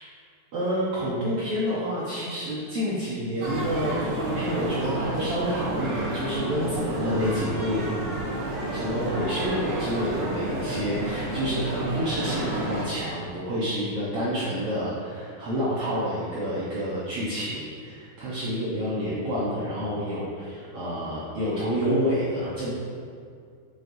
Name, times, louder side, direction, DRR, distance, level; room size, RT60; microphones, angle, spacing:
voice 1, 0.5-7.9 8.7-22.7, equal, 85° right, -8 dB, 1.3 m, -28 dB
sound 1, 3.4-12.8, right 2 dB, 60° right, 2.4 m, -31 dB
7.4 x 6.0 x 2.6 m, 2.3 s
omnidirectional pair, 4.1 m